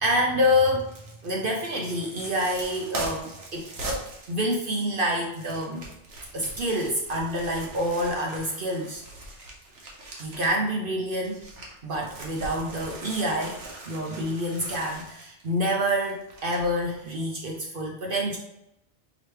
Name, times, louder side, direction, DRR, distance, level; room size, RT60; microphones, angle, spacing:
voice 1, 0.0-0.9 1.2-3.7 4.3-5.8 6.3-9.0 10.2-11.4 11.8-18.4, equal, 55° right, 0 dB, 0.7 m, -27 dB
sound 1, 0.8-10.7 11.1-17.1 17.5-17.6, right 1 dB, 80° right, 1.3 m, -41 dB
4.9 x 3.0 x 3.2 m, 0.85 s
omnidirectional pair, 1.2 m